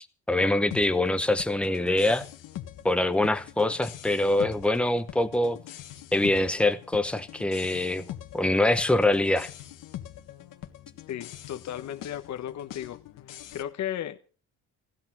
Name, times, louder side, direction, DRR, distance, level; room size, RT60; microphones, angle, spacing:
voice 1, 0.0-2.2 2.8-5.6 6.1-8.1 8.3-9.5, left 1 dB, 5° left, 0.9 m, -24 dB
sound 1, 0.7-13.6, left 12 dB, 85° left, 1.7 m, -43 dB
voice 2, 11.1-13.0 13.5-14.2, left 11 dB, 60° left, 1.2 m, -35 dB
16.5 x 11.0 x 6.0 m
cardioid pair, 145°, 32 cm